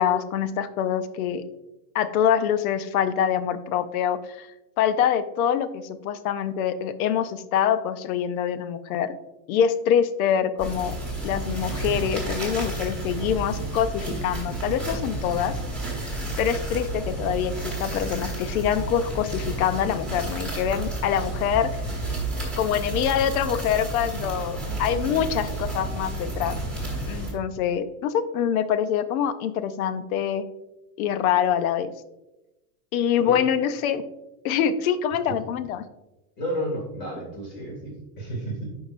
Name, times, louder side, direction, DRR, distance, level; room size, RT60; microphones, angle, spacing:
voice 1, 0.0-1.4 1.9-4.5 4.8-9.1 9.5-10.9 11.2-15.5 15.9-21.8 22.6-26.6 27.0-30.4 31.0-31.9 32.9-34.0 34.4-35.8, left 9 dB, 65° left, 12 dB, 0.7 m, -25 dB
sound 1, 10.6-27.3, right 2 dB, ahead, 1.4 m, -31 dB
voice 2, 36.4-38.8, equal, 25° left, -1 dB, 2.1 m, -32 dB
10.5 x 4.8 x 2.5 m, 0.97 s
supercardioid pair, 180°, 47 cm